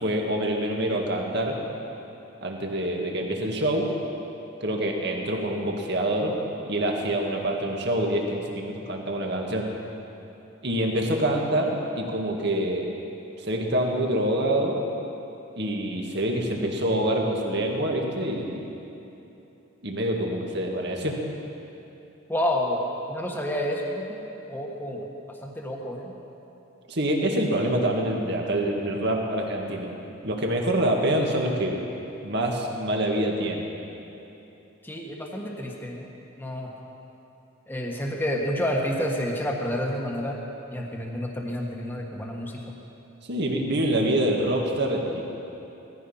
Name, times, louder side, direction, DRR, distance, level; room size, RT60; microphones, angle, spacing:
voice 1, 0.0-1.6 2.4-3.9 4.6-6.4 6.7-9.7 10.6-12.9 13.5-14.8 15.6-18.6 19.8-21.2 26.9-29.9 30.2-31.8 32.2-33.7 43.3-45.2, right 1 dB, 55° right, 0 dB, 1.9 m, -26 dB
voice 2, 22.3-26.1 34.8-36.1 36.4-36.7 37.7-40.4 40.7-42.6, equal, 10° left, -1 dB, 1.4 m, -29 dB
17.5 x 14.0 x 5.7 m, 2.9 s
head